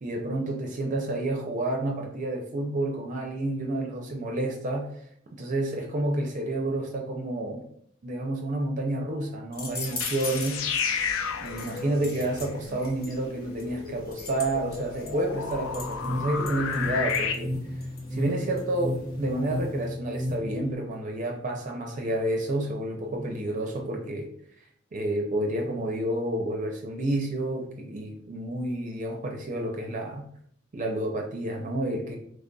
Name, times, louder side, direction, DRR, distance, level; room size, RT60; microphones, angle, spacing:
voice 1, 0.0-4.9 5.3-7.7 8.0-10.6 11.4-17.6 18.1-24.3 24.9-30.3 30.7-32.2, right 1 dB, 40° right, 2 dB, 0.5 m, -30 dB
sound 1, 9.5-19.9, left 3 dB, 50° left, 0.8 m, -42 dB
sound 2, 9.9-17.3, left 6 dB, 80° left, 0.4 m, -33 dB
sound 3, 15.5-20.7, left 1 dB, 20° left, 1.1 m, -34 dB
3.8 x 3.2 x 2.2 m, 0.64 s
head